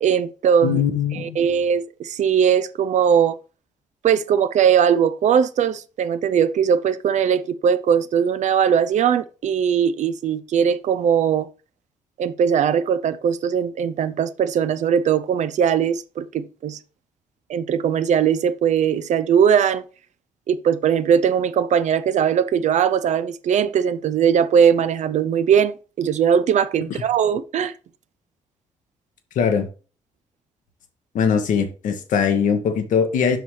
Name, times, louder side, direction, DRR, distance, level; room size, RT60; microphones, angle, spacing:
voice 1, 0.0-0.8 1.1-3.4 4.0-11.5 12.2-16.8 17.5-19.8 20.5-27.7, right 8 dB, 50° right, 0.6 m, -20 dB
voice 2, 0.6-1.4 29.3-29.7 31.1-33.4, left 7 dB, 60° left, 1.2 m, -21 dB
7.9 x 6.2 x 3.2 m
figure-of-eight pair, 40°, 15 cm